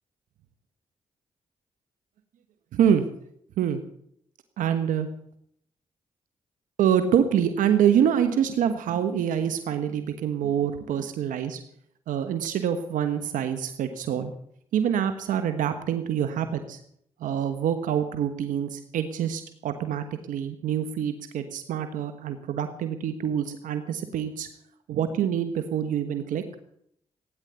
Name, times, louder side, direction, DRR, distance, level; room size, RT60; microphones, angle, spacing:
voice 1, 2.7-3.1 3.6-3.8 4.6-5.1 6.8-11.6 12.1-14.3 14.7-16.8 17.2-24.5 24.9-26.4, right 9 dB, 85° right, 9 dB, 1.3 m, -26 dB
17.0 x 10.0 x 8.1 m, 0.70 s
supercardioid pair, 55°, 13 cm